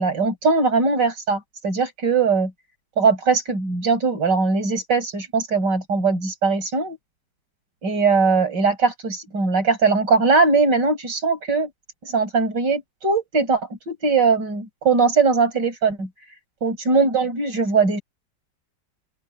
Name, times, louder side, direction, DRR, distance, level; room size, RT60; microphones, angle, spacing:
voice 1, 0.0-2.5 3.0-7.0 7.8-11.7 12.0-16.1 16.6-18.0, right 4 dB, 75° right, 6.7 m, -20 dB
open air
omnidirectional pair, 1.9 m